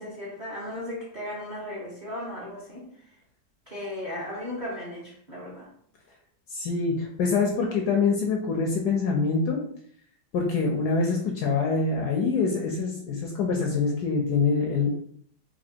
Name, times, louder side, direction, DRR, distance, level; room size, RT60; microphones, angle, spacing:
voice 1, 0.0-2.8 3.7-5.7, left 1 dB, 30° right, -6 dB, 0.9 m, -36 dB
voice 2, 6.5-9.6 10.3-14.9, left 4 dB, 70° left, 0 dB, 1.0 m, -25 dB
4.2 x 2.6 x 2.8 m, 0.62 s
omnidirectional pair, 2.1 m